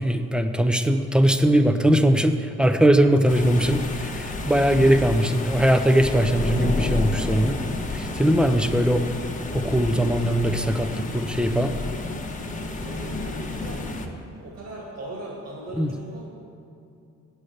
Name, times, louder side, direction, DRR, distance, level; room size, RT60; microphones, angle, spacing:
voice 1, 0.0-7.5 7.9-9.1 9.5-11.7 15.8-15.9, right 1 dB, 5° right, 8 dB, 0.6 m, -20 dB
sound 1, 3.3-14.1, left 3 dB, 25° left, 1.0 m, -30 dB
voice 2, 12.8-13.9 14.4-16.3, right 1 dB, 55° right, -2 dB, 2.1 m, -38 dB
8.3 x 6.6 x 7.8 m, 2.5 s
cardioid pair, 90°, 30 cm